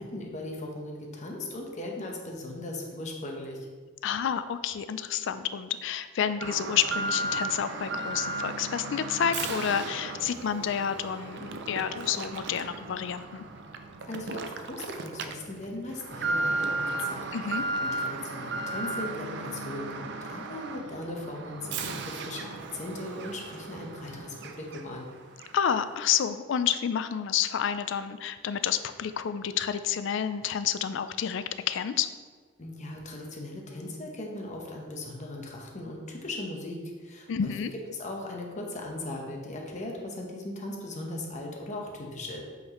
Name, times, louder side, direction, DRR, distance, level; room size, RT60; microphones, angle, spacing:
voice 1, 0.0-3.7 14.1-25.1 32.6-37.5 37.9-42.4, left 1 dB, 40° left, 0 dB, 0.9 m, -38 dB
voice 2, 4.0-13.4 17.3-17.6 25.5-32.1 37.3-37.7, left 8 dB, 65° left, 12 dB, 0.3 m, -29 dB
Alarm, 6.4-25.1 25.4-25.5 26.1-26.2, right 2 dB, 60° right, 0.4 m, -35 dB
8.1 x 4.0 x 3.0 m, 1.5 s
head